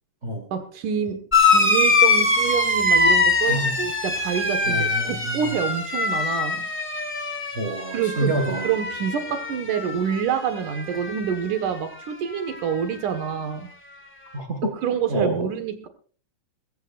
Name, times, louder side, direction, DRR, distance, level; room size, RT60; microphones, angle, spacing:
voice 1, 0.5-6.7 7.9-8.3 8.6-13.7 14.8-15.9, right 8 dB, 80° right, 8 dB, 3.2 m, -27 dB
sound 1, 1.3-10.3 10.6-11.4 12.5-12.6, left 3 dB, 5° left, 1.4 m, -23 dB
voice 2, 3.5-3.8 4.7-5.4 7.6-8.7 14.3-14.8 15.1-15.5, right 2 dB, 25° right, 3 dB, 1.7 m, -27 dB
21.5 x 15.0 x 2.6 m, 0.40 s
omnidirectional pair, 3.6 m